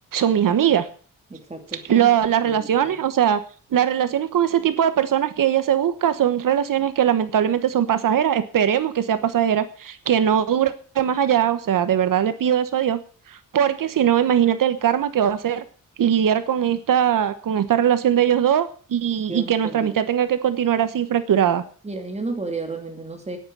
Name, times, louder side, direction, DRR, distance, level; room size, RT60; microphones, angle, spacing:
voice 1, 0.1-0.9 1.9-3.4 3.7-13.0 13.3-15.6 16.0-21.6, right 9 dB, 70° right, 12 dB, 1.2 m, -20 dB
voice 2, 1.3-2.1 2.4-3.0 19.3-19.9 21.8-23.4, right 3 dB, 20° right, 4 dB, 2.7 m, -32 dB
10.0 x 9.7 x 9.3 m, 0.43 s
wide cardioid pair, 170°, 33 cm